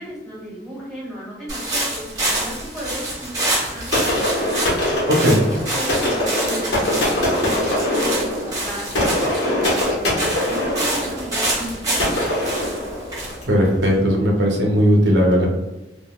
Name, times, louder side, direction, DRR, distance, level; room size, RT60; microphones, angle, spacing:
voice 1, 0.0-4.5 5.4-9.4 9.9-12.7, equal, ahead, -7 dB, 1.4 m, -34 dB
sound 1, 1.5-14.3, right 1 dB, 20° right, 0.9 m, -27 dB
sound 2, 3.9-13.6, left 1 dB, 75° left, 1.1 m, -23 dB
voice 2, 5.1-5.4 13.5-15.5, equal, 70° right, -1 dB, 0.6 m, -17 dB
3.6 x 2.3 x 2.2 m, 1.0 s
head